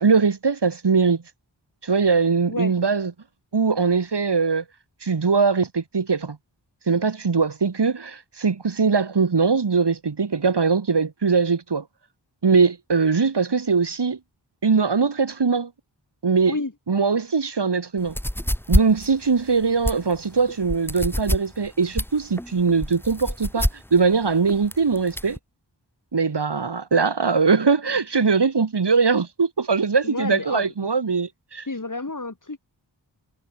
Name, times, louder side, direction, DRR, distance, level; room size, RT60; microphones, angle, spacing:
voice 1, 0.0-1.2 1.8-3.1 3.5-4.6 5.0-6.4 6.9-11.8 12.4-14.2 14.6-15.7 16.2-16.6 16.9-18.2 18.7-25.4 26.1-31.7, right 5 dB, 60° right, 1.9 m, -21 dB
sound 1, 18.1-25.4, equal, 5° left, 2.3 m, -26 dB
voice 2, 30.0-30.7 31.7-32.6, left 3 dB, 40° left, 4.3 m, -30 dB
wide cardioid pair, 50°, 45 cm